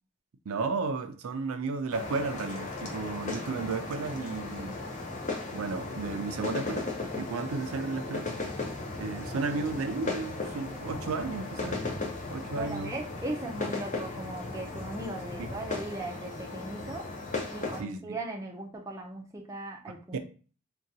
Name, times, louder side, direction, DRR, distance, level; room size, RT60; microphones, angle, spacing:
voice 1, 0.5-4.8 5.5-6.9 7.2-8.3 8.9-11.8 12.3-12.9 17.8-18.0 19.9-20.2, right 4 dB, 75° right, 0.4 m, -33 dB
sound 1, 1.9-17.8, left 3 dB, 35° left, 0.6 m, -36 dB
voice 2, 12.5-17.1 17.5-20.2, right 2 dB, 15° right, 0.4 m, -38 dB
3.8 x 2.2 x 2.7 m
head